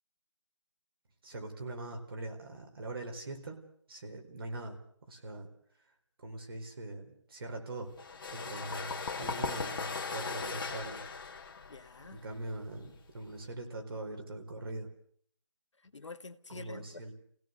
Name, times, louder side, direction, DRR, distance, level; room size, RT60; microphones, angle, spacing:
voice 1, 1.2-3.5 3.9-4.8 5.1-5.5 6.2-7.9 8.3-11.0 12.1-14.9 16.5-17.1, right 2 dB, 50° right, 3 dB, 4.5 m, -42 dB
sound 1, 8.0-13.4, left 5 dB, 45° left, 2.0 m, -38 dB
voice 2, 11.6-12.2 15.8-17.1, left 3 dB, 75° left, 8 dB, 1.7 m, -48 dB
28.5 x 17.0 x 6.6 m, 0.62 s
figure-of-eight pair, 160°, 15 cm